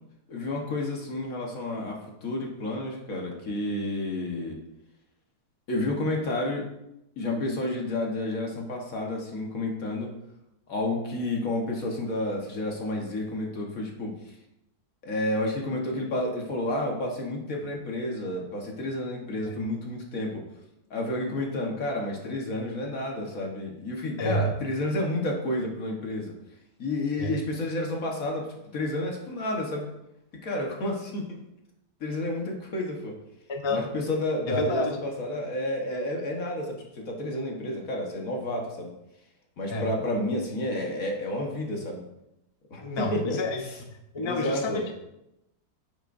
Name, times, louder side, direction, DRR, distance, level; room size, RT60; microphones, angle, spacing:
voice 1, 0.3-4.6 5.7-6.6 7.2-10.1 10.7-14.1 15.0-20.4 20.9-26.3 26.8-29.9 30.4-31.4 32.0-33.1 33.7-38.9 39.6-42.0 42.7-43.8 44.2-44.9, left 1 dB, 60° left, 0 dB, 1.7 m, -30 dB
voice 2, 24.2-24.6 27.2-27.4 33.5-33.9 34.5-34.9 39.7-39.9 42.8-43.6 44.1-44.9, left 1 dB, 30° left, 3 dB, 0.5 m, -29 dB
9.2 x 7.6 x 2.6 m, 0.87 s
omnidirectional pair, 1.7 m